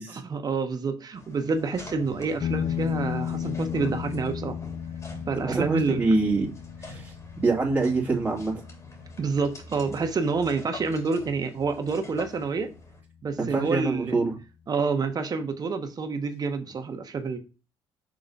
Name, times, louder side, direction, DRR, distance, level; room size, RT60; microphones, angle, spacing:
voice 1, 0.1-4.6 5.3-6.0 9.2-12.7 13.2-14.2 14.7-17.4, right 4 dB, 45° right, 1.3 m, -28 dB
sound 1, 1.1-13.0, left 2 dB, 35° left, 3.1 m, -45 dB
sound 2, 2.4-11.4, left 9 dB, 60° left, 0.5 m, -35 dB
voice 2, 5.5-6.5 6.8-8.5 13.4-14.4, right 3 dB, 15° right, 2.6 m, -25 dB
6.4 x 3.8 x 5.4 m
supercardioid pair, 70°, 10 cm